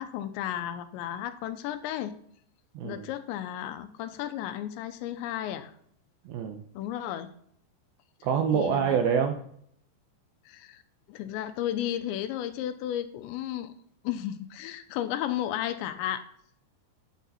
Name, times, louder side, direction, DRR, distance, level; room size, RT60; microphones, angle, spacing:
voice 1, 0.0-2.1 2.8-5.7 6.7-7.3 8.5-9.0 10.5-10.8 11.1-13.7 14.0-16.2, left 11 dB, 85° left, 11 dB, 3.0 m, -33 dB
voice 2, 2.8-3.1 6.3-6.6 8.2-9.5, right 7 dB, 80° right, 5 dB, 2.2 m, -26 dB
11.5 x 8.2 x 4.2 m, 0.67 s
omnidirectional pair, 5.2 m